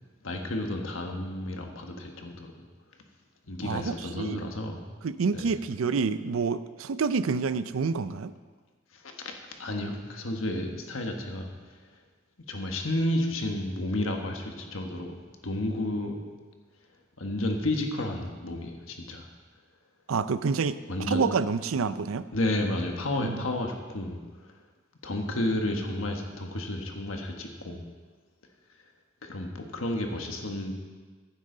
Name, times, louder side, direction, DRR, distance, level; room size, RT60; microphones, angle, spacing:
voice 1, 0.2-2.6 3.5-4.8 5.3-5.5 8.9-9.3 9.6-11.5 12.5-15.2 15.4-16.2 17.2-19.3 20.9-21.3 22.3-24.2 25.0-27.8 29.2-30.7, left 1 dB, 80° left, 3 dB, 1.4 m, -31 dB
voice 2, 3.6-4.5 5.0-8.3 20.1-20.8 21.1-22.3 23.1-23.4, right 5 dB, 90° right, 14 dB, 0.5 m, -28 dB
14.5 x 9.0 x 3.9 m, 1.4 s
head